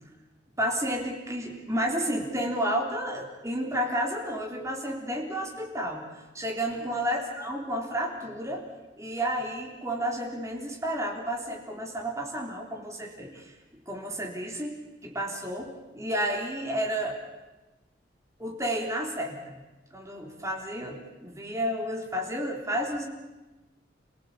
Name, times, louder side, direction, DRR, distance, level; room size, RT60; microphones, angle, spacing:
voice 1, 0.6-6.1 6.3-8.6 9.0-13.5 13.9-17.2 18.4-19.5 19.9-23.1, equal, 15° right, 0 dB, 3.6 m, -31 dB
28.5 x 17.0 x 8.4 m, 1.1 s
head